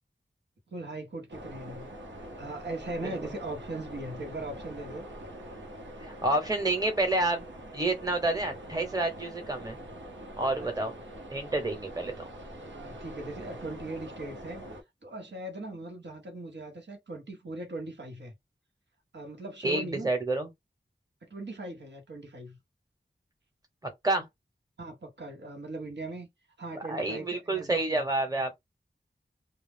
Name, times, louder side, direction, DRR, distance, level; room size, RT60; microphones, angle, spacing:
voice 1, 0.7-1.9 2.4-5.1 10.6-10.7 12.6-14.7 15.0-18.3 19.1-20.1 21.2-22.6 24.8-26.3 26.6-28.0, right 2 dB, 70° right, 1.0 m, -39 dB
sound 1, 1.3-14.8, right 1 dB, 90° right, 0.8 m, -44 dB
voice 2, 6.0-7.4 7.7-9.8 10.4-10.9 11.3-12.1 19.6-20.5 24.0-24.2 26.9-28.6, right 2 dB, 20° right, 1.2 m, -29 dB
2.3 x 2.0 x 3.4 m
wide cardioid pair, 60°, 19 cm